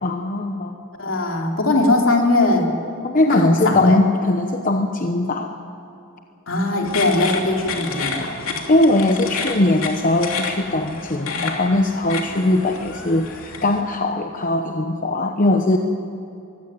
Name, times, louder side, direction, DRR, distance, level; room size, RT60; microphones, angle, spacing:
voice 1, 0.0-0.8 3.0-5.5 8.7-15.8, left 2 dB, 40° left, 5 dB, 1.0 m, -20 dB
voice 2, 1.0-2.7 3.3-4.0 6.5-8.4, left 2 dB, 70° left, 1 dB, 3.4 m, -20 dB
sound 1, 6.8-13.8, left 4 dB, 90° left, 2.8 m, -30 dB
23.5 x 16.0 x 9.4 m, 2.7 s
head